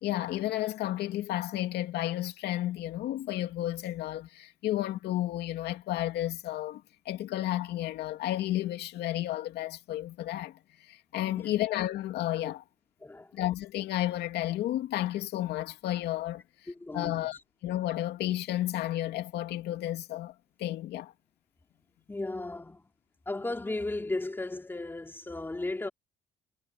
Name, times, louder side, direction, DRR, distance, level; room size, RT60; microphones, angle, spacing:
voice 1, 0.0-12.6 13.3-16.4 16.9-21.1, left 14 dB, 75° left, 2.4 m, -32 dB
voice 2, 11.2-11.6 13.0-13.3 16.7-17.3 22.1-22.8 23.3-25.9, left 2 dB, 15° left, 3.6 m, -35 dB
cardioid pair, 110°, 17 cm